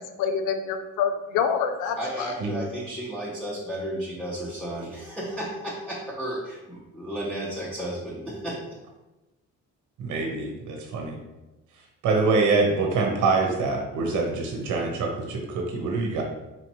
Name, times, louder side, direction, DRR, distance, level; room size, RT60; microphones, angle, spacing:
voice 1, 0.2-2.3, left 7 dB, 90° left, 7 dB, 0.5 m, -26 dB
voice 2, 2.0-8.6, right 1 dB, 5° left, -8 dB, 0.8 m, -33 dB
voice 3, 10.0-11.2 12.0-16.2, right 3 dB, 75° right, 1 dB, 0.8 m, -25 dB
4.1 x 2.8 x 3.0 m, 1.0 s
cardioid pair, 90°, 30 cm